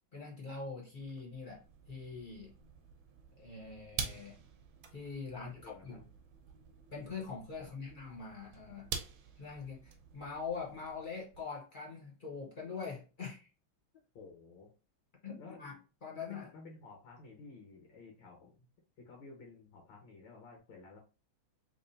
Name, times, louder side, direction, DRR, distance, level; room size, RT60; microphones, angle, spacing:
voice 1, 0.1-2.5 3.3-4.4 4.9-6.0 6.9-8.9 9.4-13.5 15.2-15.8 16.0-16.5, left 5 dB, 40° left, -3 dB, 0.7 m, -43 dB
sound 1, 0.9-11.4, right 6 dB, 80° right, 1.4 m, -47 dB
voice 2, 5.3-6.0 7.5-7.8 14.2-14.7 15.4-15.6 16.1-18.7 19.0-21.0, left 3 dB, 90° left, 0 dB, 2.0 m, -53 dB
3.7 x 3.5 x 2.6 m, 0.32 s
omnidirectional pair, 2.2 m